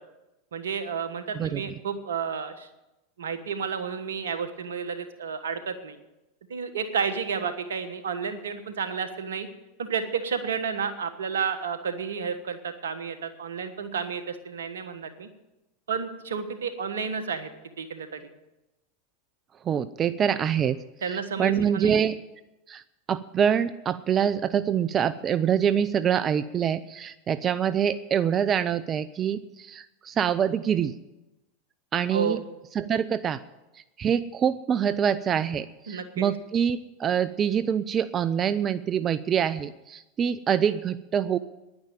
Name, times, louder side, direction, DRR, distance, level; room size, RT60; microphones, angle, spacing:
voice 1, 0.5-2.7 3.2-6.0 6.5-9.5 9.8-15.3 15.9-17.5 17.8-18.2 21.0-22.1 32.1-32.4 35.9-36.2, right 6 dB, 80° right, 10 dB, 1.4 m, -31 dB
voice 2, 1.3-1.7 19.6-20.8 21.1-22.2 22.7-22.8 23.1-30.9 31.9-32.4 32.7-33.4 33.7-41.4, right 8 dB, 30° right, 14 dB, 0.5 m, -25 dB
10.5 x 9.6 x 8.9 m, 0.98 s
hypercardioid pair, 95°, 0 cm